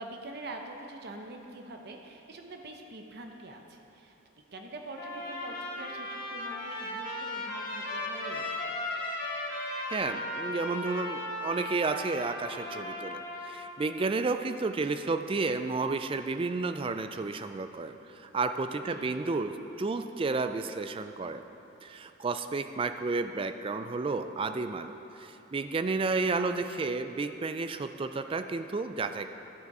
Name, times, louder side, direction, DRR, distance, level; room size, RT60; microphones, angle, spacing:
voice 1, 0.0-4.2 4.5-8.7 18.9-19.3, right 2 dB, 55° right, 3 dB, 0.8 m, -44 dB
Trumpet, 5.0-13.7, left 1 dB, 45° left, 1.6 m, -36 dB
voice 2, 9.9-21.4 21.8-29.3, right 3 dB, 25° right, 9 dB, 0.3 m, -32 dB
12.5 x 6.9 x 4.8 m, 3.0 s
head